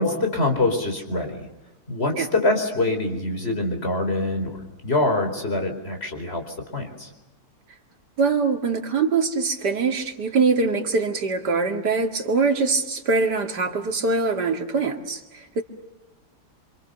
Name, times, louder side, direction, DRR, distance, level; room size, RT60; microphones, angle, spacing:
voice 1, 0.0-1.5 1.9-7.1, left 2 dB, 35° left, 4 dB, 4.6 m, -25 dB
voice 2, 8.2-15.6, right 4 dB, 75° right, 4 dB, 2.9 m, -23 dB
27.5 x 26.5 x 6.8 m, 1.0 s
omnidirectional pair, 1.8 m